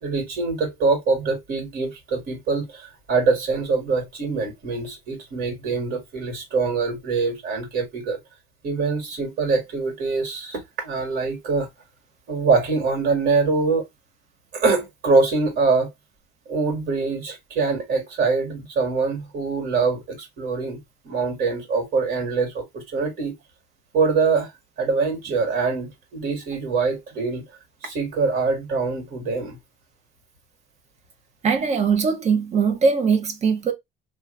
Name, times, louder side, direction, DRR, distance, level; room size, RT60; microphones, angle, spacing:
voice 1, 0.0-8.2 8.6-11.7 12.3-13.9 14.5-15.9 16.5-23.3 23.9-24.5 24.8-27.5 27.8-29.6, right 4 dB, 65° right, 2.1 m, -24 dB
voice 2, 31.4-33.7, right 5 dB, 40° right, 1.0 m, -21 dB
3.2 x 2.3 x 3.2 m
cardioid pair, 110°, 17 cm